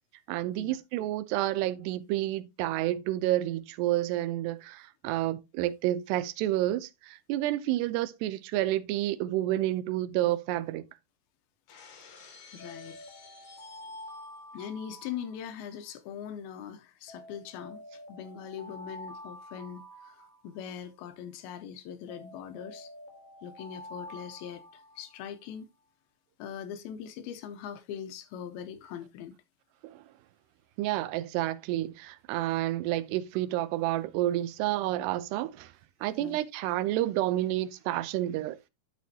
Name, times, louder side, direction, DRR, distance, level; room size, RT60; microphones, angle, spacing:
voice 1, 0.3-10.8 29.8-30.0 30.8-35.7 36.0-38.6, right 14 dB, 90° right, 2.8 m, -30 dB
Shatter, 11.7-14.4, left 6 dB, 60° left, 3.5 m, -53 dB
voice 2, 12.5-13.0 14.5-22.9 23.4-25.7 26.4-29.3 36.2-36.4, left 8 dB, 80° left, 2.4 m, -41 dB
Alarm, 12.6-15.9 17.1-20.9 22.1-25.3, left 1 dB, 40° left, 2.2 m, -48 dB
11.0 x 6.2 x 2.8 m
omnidirectional pair, 4.7 m